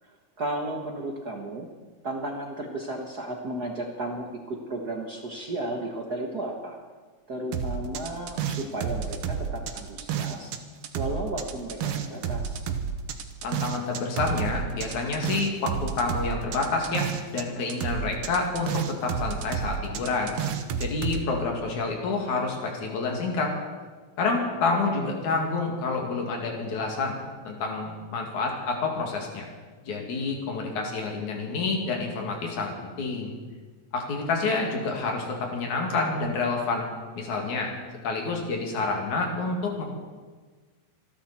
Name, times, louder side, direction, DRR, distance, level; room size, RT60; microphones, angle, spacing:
voice 1, 0.0-1.7 2.0-6.8 7.3-10.5 10.9-12.6 24.4-24.6 24.9-25.1, right 1 dB, 45° right, 1 dB, 1.3 m, -34 dB
sound 1, 7.5-10.6 10.8-17.4 17.7-21.2, right 7 dB, 60° right, 1.7 m, -30 dB
voice 2, 13.4-20.4 20.8-23.5 24.2-29.5 29.8-33.3 33.9-36.9 37.2-37.7 38.0-39.8, left 3 dB, 85° left, 1 dB, 3.8 m, -28 dB
26.5 x 11.5 x 4.3 m, 1.4 s
omnidirectional pair, 3.3 m